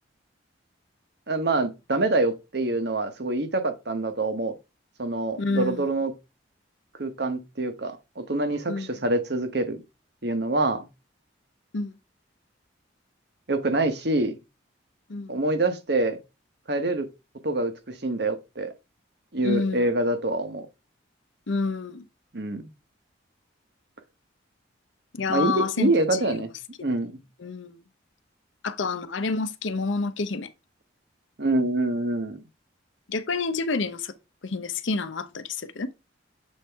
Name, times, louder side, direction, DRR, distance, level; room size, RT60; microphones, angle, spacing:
voice 1, 1.3-4.5 5.0-6.1 7.0-9.8 10.2-10.9 13.5-14.4 15.3-16.2 16.7-17.1 17.4-18.7 19.3-20.7 22.3-22.6 25.3-26.5 26.8-27.2 31.4-32.4, right 2 dB, 55° right, 1.0 m, -26 dB
voice 2, 5.3-5.9 8.7-8.9 11.7-11.9 15.1-15.3 19.4-19.9 21.5-22.1 25.1-26.4 26.8-26.9 27.4-27.8 28.6-30.5 33.1-34.1 34.4-35.9, left 3 dB, 75° left, 0.7 m, -28 dB
7.3 x 4.5 x 3.4 m
head